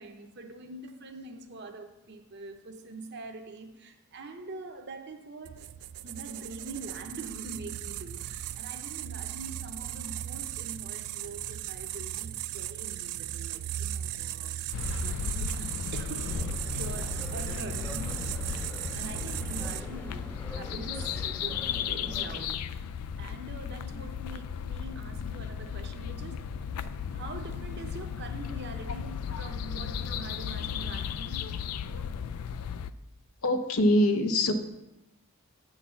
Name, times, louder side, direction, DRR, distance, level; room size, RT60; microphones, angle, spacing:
voice 1, 0.0-18.2 18.9-22.8 23.2-26.5 27.1-31.5, right 3 dB, 50° right, 0.7 m, -44 dB
sound 1, 5.4-19.8, right 12 dB, 80° right, 0.3 m, -37 dB
sound 2, 14.7-32.9, left 7 dB, 90° left, 0.4 m, -35 dB
sound 3, 16.3-22.5, left 1 dB, 5° left, 0.5 m, -45 dB
voice 2, 33.4-34.5, left 1 dB, 70° left, 0.8 m, -25 dB
8.4 x 4.0 x 6.9 m
head